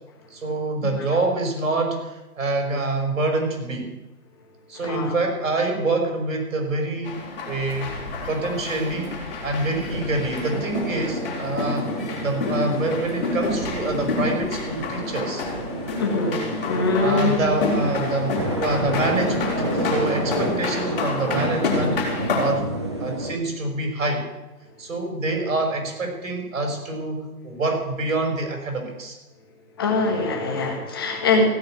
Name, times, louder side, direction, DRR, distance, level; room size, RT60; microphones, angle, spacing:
voice 1, 0.3-3.9 4.7-7.2 7.5-7.9 8.3-9.1 9.4-11.9 12.2-15.4 17.0-22.0 22.3-22.7 23.0-24.2 24.8-29.2, right 2 dB, 55° right, 2 dB, 5.5 m, -26 dB
voice 2, 4.8-5.1 16.0-17.5 29.8-31.4, left 3 dB, 15° left, 1 dB, 1.5 m, -23 dB
sound 1, 7.1-22.5, left 3 dB, 35° left, 4.0 m, -29 dB
sound 2, 9.9-23.3, right 1 dB, 15° right, 0.9 m, -30 dB
16.5 x 7.1 x 8.9 m, 1.0 s
hypercardioid pair, 170°, 48 cm